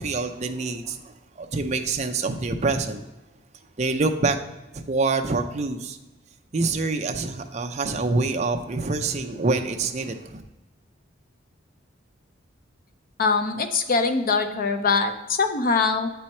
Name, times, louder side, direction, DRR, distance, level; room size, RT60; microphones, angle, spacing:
voice 1, 0.0-3.0 3.8-4.4 4.7-6.0 6.5-10.4, right 3 dB, 35° right, 5 dB, 0.6 m, -26 dB
voice 2, 13.2-16.1, left 4 dB, 45° left, 7 dB, 0.6 m, -23 dB
8.6 x 4.5 x 4.3 m, 1.1 s
head